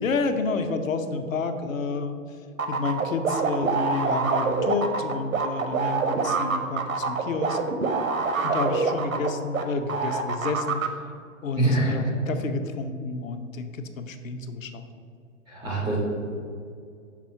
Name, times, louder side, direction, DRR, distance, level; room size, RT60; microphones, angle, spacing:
voice 1, 0.0-2.4 2.7-7.6 8.4-10.8 11.4-14.9, left 4 dB, 70° left, 7 dB, 0.8 m, -30 dB
sound 1, 2.6-9.6 9.9-10.9, right 4 dB, 75° right, 0.9 m, -25 dB
voice 2, 11.6-11.9 15.5-16.0, right 1 dB, 5° right, -7 dB, 0.3 m, -24 dB
6.1 x 3.6 x 5.6 m, 2.3 s
figure-of-eight pair, 125°, 41 cm